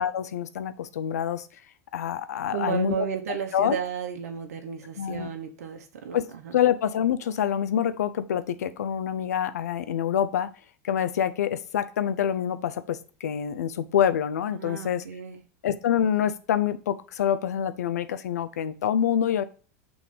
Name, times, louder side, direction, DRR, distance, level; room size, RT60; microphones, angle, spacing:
voice 1, 0.0-1.5 1.9-3.1 3.5-3.8 5.0-5.3 6.1-6.2 6.5-10.5 10.8-15.0 15.6-19.4, left 9 dB, 90° left, 12 dB, 0.6 m, -26 dB
voice 2, 2.5-6.5 14.5-15.4, right 7 dB, 85° right, 4 dB, 1.0 m, -33 dB
6.2 x 3.2 x 5.4 m, 0.38 s
hypercardioid pair, 105°, 8 cm